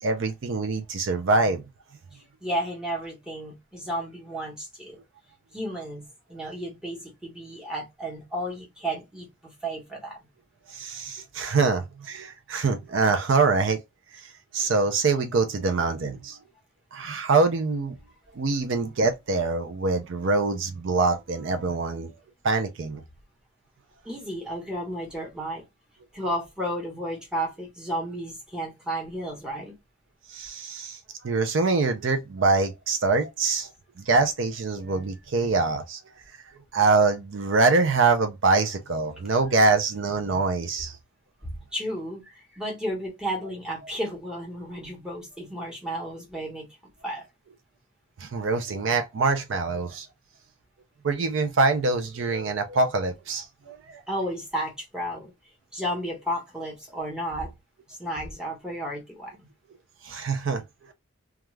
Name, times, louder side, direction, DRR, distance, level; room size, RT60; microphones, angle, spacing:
voice 1, 0.0-1.6 10.7-13.8 14.1-16.4 16.9-17.9 18.3-22.1 22.4-23.0 30.3-33.7 34.0-36.0 36.7-41.0 48.2-50.1 51.0-54.0 60.0-60.6, right 3 dB, 65° right, 0.4 m, -24 dB
voice 2, 2.4-5.0 5.5-10.2 24.0-25.6 26.1-29.7 41.4-46.7 47.0-47.2 54.1-55.3 55.7-57.5 57.9-59.4, equal, 5° right, 0.9 m, -33 dB
2.3 x 2.3 x 3.1 m
head